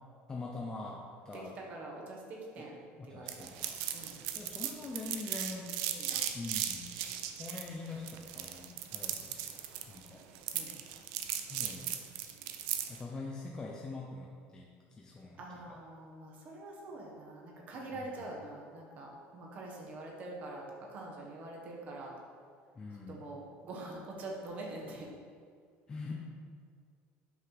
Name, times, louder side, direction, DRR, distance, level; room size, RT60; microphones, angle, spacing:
voice 1, 0.3-1.6 2.6-2.7 3.0-3.8 4.3-5.7 6.3-7.0 7.2-9.5 9.9-10.2 11.5-11.9 12.9-15.8 17.9-18.3 22.7-23.4 25.9-26.1, left 3 dB, 15° left, -2 dB, 0.5 m, -44 dB
voice 2, 1.3-3.5 3.9-4.2 5.9-6.2 10.5-10.8 15.4-20.6 20.9-22.1 23.1-25.1, right 2 dB, 35° right, -1 dB, 1.2 m, -45 dB
sound 1, 3.3-13.0, right 10 dB, 85° right, 0.6 m, -37 dB
5.9 x 5.5 x 4.7 m, 2.1 s
cardioid pair, 170°, 5 cm